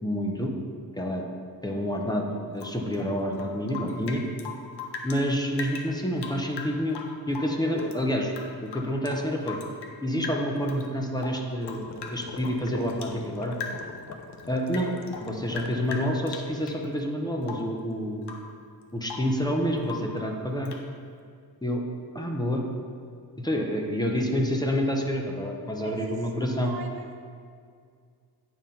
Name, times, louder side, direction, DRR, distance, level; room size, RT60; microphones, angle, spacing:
voice 1, 0.0-0.5 1.0-1.2 1.6-2.2 2.5-4.2 5.0-7.0 7.3-8.3 8.6-9.6 10.0-11.9 12.1-13.6 14.5-14.9 15.2-18.3 18.9-20.7 21.6-21.8 22.1-22.6 23.4-26.7, equal, 10° left, 0 dB, 0.9 m, -28 dB
Rain / Drip, 2.6-5.2 5.5-8.0 8.3-10.0 10.2-10.9 11.2-13.2 13.5-14.0 14.3-16.8 17.4-17.8 18.2-18.5 18.8-19.4 19.8-20.2 20.7-20.9, left 5 dB, 80° left, 0.9 m, -40 dB
sound 1, 11.6-16.0, left 5 dB, 45° left, 0.7 m, -41 dB
voice 2, 25.8-27.1, right 3 dB, 65° right, 4 dB, 0.8 m, -42 dB
9.7 x 3.7 x 5.7 m, 2.2 s
cardioid pair, 105°, 40 cm